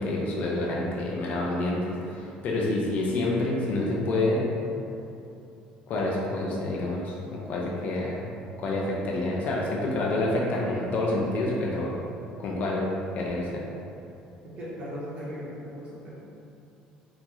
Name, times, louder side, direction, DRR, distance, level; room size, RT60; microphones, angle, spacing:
voice 1, 0.0-4.4 5.9-8.3 8.6-12.0 12.4-12.9 13.1-13.6, left 2 dB, 55° left, -3 dB, 0.6 m, -28 dB
voice 2, 14.6-16.1, equal, 40° right, -8 dB, 1.2 m, -37 dB
3.0 x 2.8 x 3.7 m, 2.7 s
supercardioid pair, 100°, 3 cm